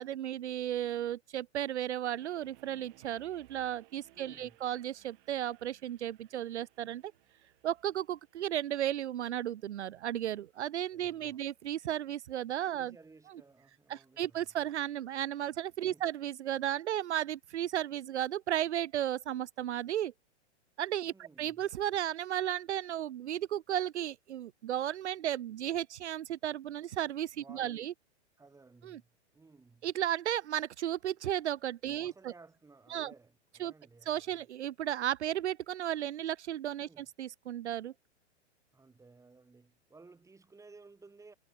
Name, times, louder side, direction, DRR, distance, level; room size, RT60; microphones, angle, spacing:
voice 1, 0.0-7.0 7.6-12.9 13.9-20.1 20.8-27.9 28.8-29.0 29.8-32.3 32.9-33.1 33.6-33.7 34.1-37.9, right 11 dB, 75° right, 0.7 m, -34 dB
sound 1, 2.2-13.3, right 23 dB, 45° right, 6.3 m, -66 dB
voice 2, 4.1-4.6 10.9-11.4 12.7-14.5 15.9-16.1 21.1-21.6 27.4-27.9 28.4-29.9 31.8-34.4 36.9-37.1 38.7-41.3, right 3 dB, 10° right, 6.2 m, -57 dB
hypercardioid pair, 120°, 35 cm